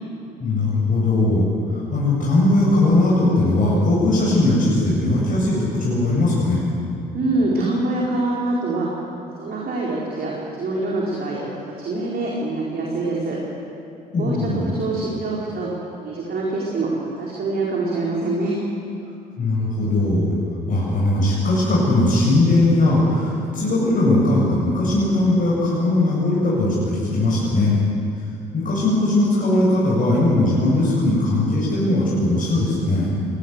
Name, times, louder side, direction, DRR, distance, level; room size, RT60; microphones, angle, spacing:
voice 1, 0.4-1.4 1.7-6.6 14.1-14.7 19.4-20.4 20.7-27.8 28.5-33.2, left 2 dB, 40° left, -6 dB, 7.8 m, -19 dB
voice 2, 7.1-8.9 9.4-13.4 14.2-14.4 14.7-15.7 16.0-18.6, right 2 dB, 50° right, -4 dB, 4.8 m, -25 dB
23.0 x 19.0 x 8.3 m, 2.6 s
hypercardioid pair, 55°, 21 cm